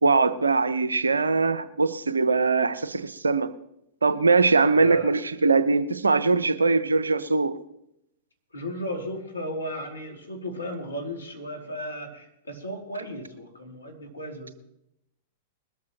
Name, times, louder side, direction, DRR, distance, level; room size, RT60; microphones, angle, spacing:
voice 1, 0.0-3.5 4.0-7.6, right 4 dB, 75° right, 0.7 m, -22 dB
voice 2, 4.8-5.1 8.5-14.5, equal, 85° left, 2.7 m, -35 dB
21.0 x 13.5 x 3.0 m
figure-of-eight pair, 100°, 0 cm